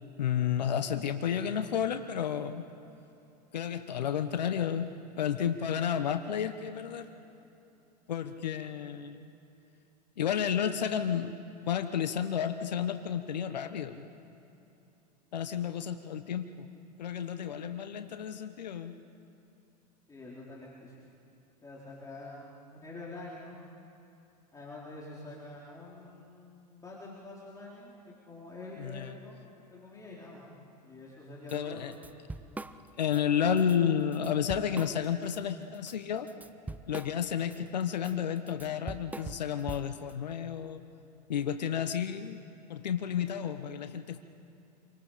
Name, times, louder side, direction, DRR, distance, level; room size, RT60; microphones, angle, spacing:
voice 1, 0.0-2.7 3.5-7.1 8.1-9.3 10.2-11.3 11.6-14.1 15.3-16.7 17.0-19.0 28.8-29.2 31.5-31.9 33.0-36.3 36.9-40.8 41.3-42.4 42.7-44.2, left 8 dB, 85° left, 9 dB, 1.0 m, -31 dB
voice 2, 20.1-21.2 21.6-23.6 24.5-27.9 28.3-29.4 29.7-30.4 30.8-31.9, left 2 dB, 15° left, -6 dB, 4.1 m, -46 dB
Drum kit / Drum, 31.5-31.6 31.9-33.2 33.6-33.8 34.1-35.4 35.7-40.1, right 2 dB, 5° right, 0.7 m, -43 dB
27.5 x 24.0 x 5.1 m, 2.9 s
hypercardioid pair, 95°, 21 cm